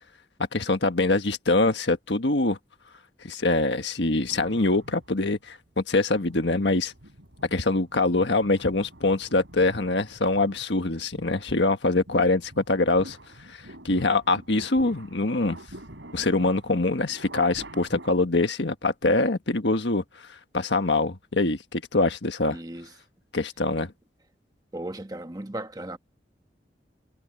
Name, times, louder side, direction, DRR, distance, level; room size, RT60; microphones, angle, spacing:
voice 1, 0.5-2.6 3.2-6.9 7.5-13.2 13.5-15.6 16.1-22.6 23.3-23.9, left 2 dB, 70° left, 1.5 m, -24 dB
sound 1, 4.0-5.5 6.0-18.1, right 1 dB, 80° right, 5.1 m, -47 dB
voice 2, 22.5-22.9 24.7-26.0, right 1 dB, 20° right, 1.3 m, -36 dB
head